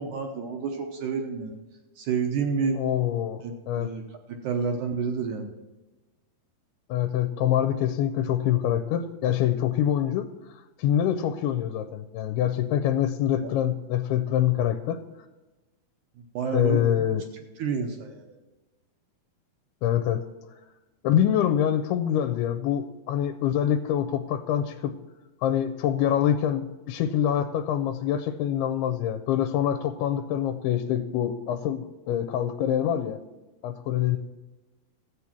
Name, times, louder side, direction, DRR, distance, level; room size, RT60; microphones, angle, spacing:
voice 1, 0.0-1.6 2.0-2.8 3.4-4.0 4.3-5.5 13.4-13.5 16.3-16.8 17.6-18.3, right 5 dB, 70° right, 4 dB, 1.9 m, -29 dB
voice 2, 2.7-3.9 6.9-15.0 16.5-17.2 19.8-20.2 21.0-24.9 25.4-33.2 33.6-34.2, left 10 dB, 85° left, 9 dB, 2.6 m, -25 dB
13.5 x 8.3 x 5.9 m, 1.1 s
omnidirectional pair, 4.6 m